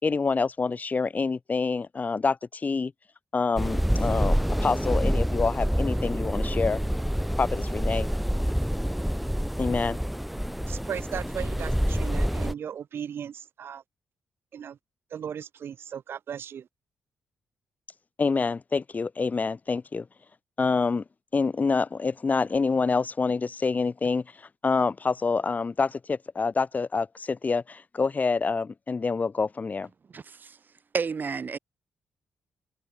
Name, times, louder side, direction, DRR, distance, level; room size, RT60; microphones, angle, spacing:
voice 1, 0.0-2.9 3.3-6.8 7.4-8.1 9.6-10.0 18.2-20.0 20.6-21.0 21.3-24.2 24.6-29.9, left 4 dB, 40° left, 3.1 m, -27 dB
sound 1, 3.6-12.5, equal, ahead, 1.3 m, -27 dB
voice 2, 10.7-13.8 14.5-14.8 15.1-16.7, right 8 dB, 65° right, 5.9 m, -36 dB
voice 3, 30.1-30.6 30.9-31.6, right 5 dB, 50° right, 5.1 m, -31 dB
supercardioid pair, 55°, 4 cm